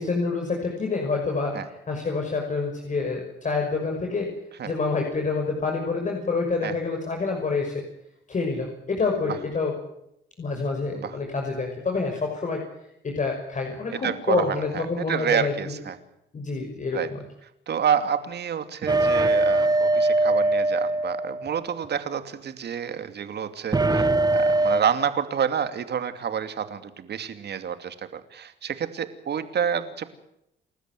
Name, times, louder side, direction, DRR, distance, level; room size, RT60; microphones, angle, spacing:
voice 1, 0.0-4.3 4.7-7.7 8.3-9.7 10.4-12.6 13.0-15.7 16.3-17.0, left 4 dB, 40° left, 2 dB, 6.0 m, -27 dB
voice 2, 14.0-16.0 16.9-17.1 17.7-30.1, right 8 dB, 60° right, 10 dB, 2.6 m, -28 dB
sound 1, 18.9-21.9 23.7-24.8, right 2 dB, 20° right, 1.5 m, -21 dB
29.5 x 13.5 x 9.3 m, 0.81 s
cardioid pair, 90°, 20 cm